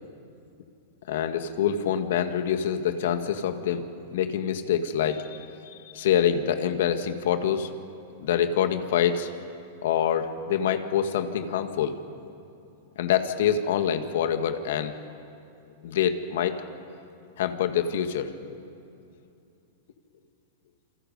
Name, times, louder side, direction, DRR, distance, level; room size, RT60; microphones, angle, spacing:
voice 1, 1.1-5.4 5.7-7.7 8.2-9.3 9.8-12.0 13.0-15.0 15.8-16.6 17.4-18.6, left 8 dB, 60° left, 8 dB, 1.7 m, -26 dB
28.0 x 27.5 x 5.3 m, 2.7 s
supercardioid pair, 180°, 0 cm